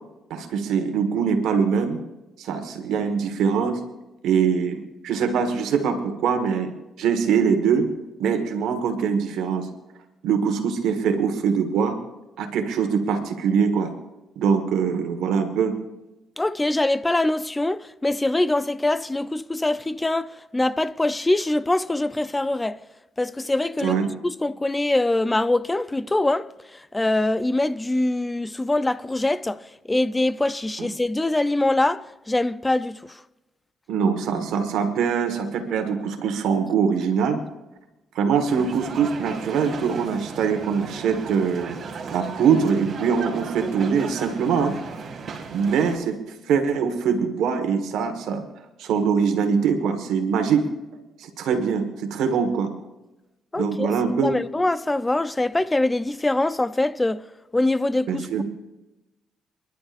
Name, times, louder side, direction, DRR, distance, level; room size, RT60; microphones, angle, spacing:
voice 1, 0.3-2.0 2.4-3.8 4.2-6.7 7.0-7.9 8.2-9.7 10.2-12.0 12.4-13.9 14.3-15.7 23.8-24.1 30.8-30.9 33.9-37.4 38.1-41.8 42.1-44.8 45.5-46.2 46.5-48.4 48.8-50.7 51.2-52.7 53.5-54.3 58.1-58.4, right 6 dB, 85° right, 1.6 m, -23 dB
voice 2, 16.4-22.8 23.2-24.0 24.2-26.5 26.9-29.6 29.9-33.0 53.5-53.9 54.2-57.2 57.5-58.4, left 2 dB, 15° left, 0.6 m, -23 dB
sound 1, 38.5-46.0, right 5 dB, 50° right, 2.3 m, -35 dB
30.0 x 11.0 x 2.6 m
cardioid pair, 90°, 0 cm